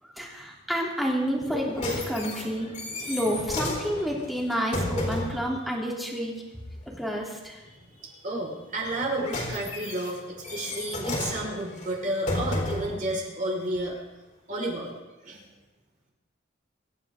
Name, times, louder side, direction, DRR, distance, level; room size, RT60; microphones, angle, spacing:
voice 1, 0.0-6.4 6.9-7.6, equal, ahead, -3 dB, 3.5 m, -29 dB
sound 1, 1.4-5.5 8.8-13.0 13.8-13.9, left 1 dB, 40° left, 4.2 m, -33 dB
voice 2, 7.9-14.0 14.5-14.9 15.2-15.4, right 1 dB, 45° right, -2 dB, 5.2 m, -31 dB
26.0 x 13.0 x 3.8 m, 1.0 s
head